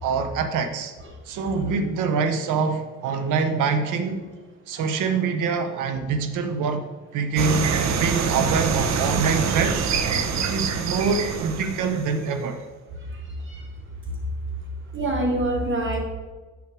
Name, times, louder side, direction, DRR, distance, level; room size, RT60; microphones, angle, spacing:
voice 1, 0.0-0.9 1.3-4.2 4.7-6.8 7.1-7.7 8.0-9.9 10.4-12.6, right 5 dB, 90° right, 8 dB, 1.0 m, -25 dB
sound 1, 7.4-12.4, right 6 dB, 65° right, 0.9 m, -25 dB
voice 2, 14.9-16.0, right 1 dB, 40° right, 0 dB, 2.3 m, -25 dB
7.0 x 6.3 x 6.0 m, 1.3 s
cardioid pair, 90°, 30 cm